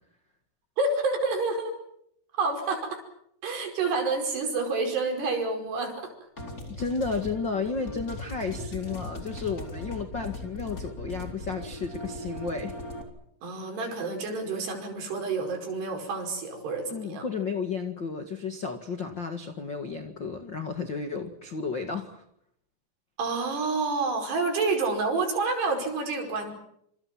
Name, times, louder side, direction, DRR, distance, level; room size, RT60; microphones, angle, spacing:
voice 1, 0.8-1.8 2.4-3.0 3.4-6.1 8.6-8.7 13.4-17.3 23.2-26.5, right 3 dB, 70° right, 4 dB, 7.2 m, -28 dB
sound 1, 6.4-13.0, left 1 dB, 20° left, 4.1 m, -39 dB
voice 2, 6.7-12.8 16.9-22.2, left 5 dB, 40° left, 6 dB, 1.7 m, -32 dB
28.0 x 28.0 x 6.0 m, 0.72 s
omnidirectional pair, 4.9 m